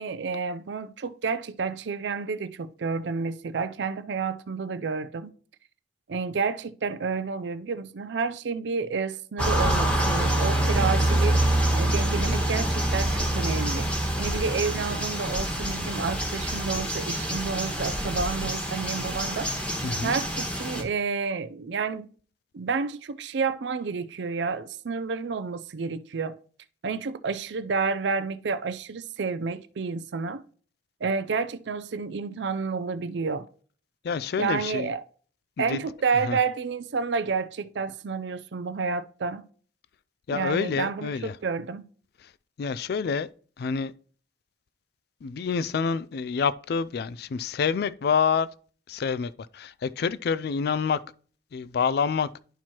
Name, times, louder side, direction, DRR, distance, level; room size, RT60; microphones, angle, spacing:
voice 1, 0.0-5.3 6.1-11.5 11.7-13.9 14.2-19.5 20.0-22.1 22.5-26.4 26.8-30.4 31.0-33.5 34.4-35.0 35.6-39.5 40.3-41.9, right 5 dB, 70° right, 0.5 m, -30 dB
sound 1, 9.4-20.8, right 1 dB, 5° left, 1.3 m, -26 dB
voice 2, 19.8-20.2 34.0-34.9 35.6-35.8 36.3-36.4 40.3-41.3 42.6-43.3 43.6-43.9 45.2-48.5 48.9-51.0 51.5-52.3, left 6 dB, 60° left, 0.3 m, -27 dB
11.0 x 4.5 x 2.9 m
head